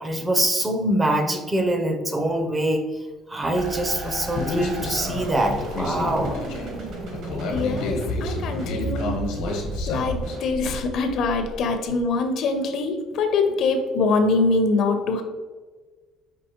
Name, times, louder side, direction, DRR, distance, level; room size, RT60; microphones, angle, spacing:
voice 1, 0.0-2.9 3.3-6.4, right 1 dB, 15° right, 5 dB, 0.5 m, -24 dB
sound 1, 3.5-12.0, right 1 dB, 65° right, 1.3 m, -34 dB
Human voice, 4.4-10.4, left 2 dB, 85° left, 1.0 m, -30 dB
voice 2, 7.5-9.2 9.9-15.2, left 3 dB, 55° left, 6 dB, 0.5 m, -23 dB
5.4 x 3.0 x 2.9 m, 1.4 s
cardioid pair, 140°, 0 cm